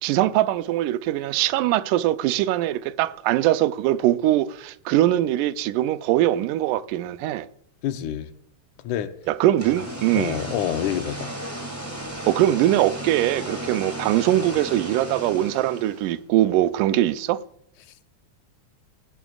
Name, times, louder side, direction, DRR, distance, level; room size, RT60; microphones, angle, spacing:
voice 1, 0.0-7.5 9.3-10.4 12.3-17.4, right 14 dB, 85° right, 2.1 m, -22 dB
voice 2, 7.8-8.3 8.8-9.1 10.1-11.4, left 11 dB, 80° left, 2.1 m, -27 dB
sound 1, 9.4-16.2, right 1 dB, 5° right, 1.9 m, -35 dB
17.0 x 11.0 x 2.4 m
omnidirectional pair, 3.6 m